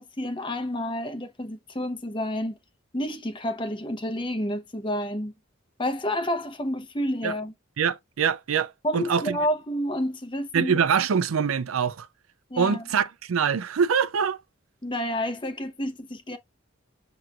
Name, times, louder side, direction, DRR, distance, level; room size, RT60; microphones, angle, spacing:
voice 1, 0.0-2.6 2.9-5.3 5.8-7.5 8.8-10.8 12.5-12.8 14.8-16.4, left 1 dB, 25° left, 0.7 m, -29 dB
voice 2, 7.8-9.4 10.5-12.1 12.6-14.4, right 6 dB, 80° right, 0.5 m, -24 dB
6.4 x 3.0 x 2.3 m
head